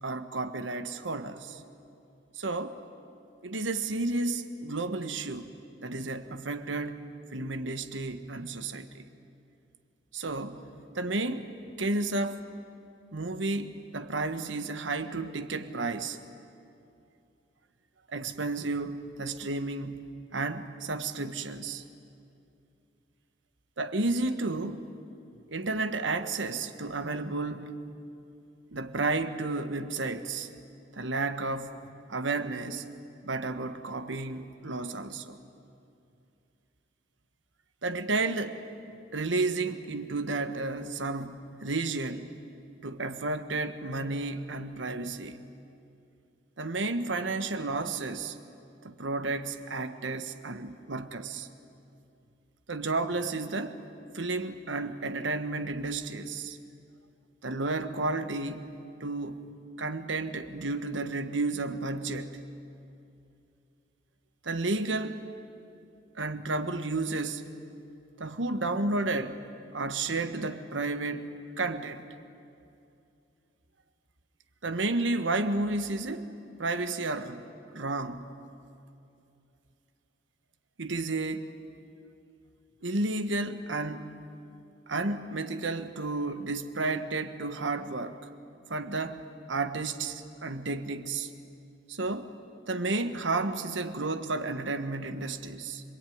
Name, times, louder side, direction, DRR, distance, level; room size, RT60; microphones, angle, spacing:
voice 1, 0.0-1.6 2.4-2.8 3.4-5.5 5.8-7.0 7.3-9.0 10.1-10.7 10.9-11.5 11.8-12.4 13.1-16.2 18.1-21.8 23.8-24.9 25.5-27.7 28.7-30.5 30.9-32.9 33.2-35.4 37.8-38.6 39.1-42.3 42.8-45.4 46.6-48.4 48.8-51.5 52.7-53.8 54.1-56.6 57.4-58.6 59.0-59.4 59.8-62.4 64.4-65.2 66.2-67.4 68.2-69.4 69.7-72.1 74.6-76.3 76.6-77.4 77.7-78.4 80.8-81.5 82.8-84.1 84.9-88.2 88.7-89.2 89.5-91.3 91.9-92.3 92.7-95.8, right 3 dB, 85° right, 1.4 m, -32 dB
25.5 x 22.5 x 9.4 m
head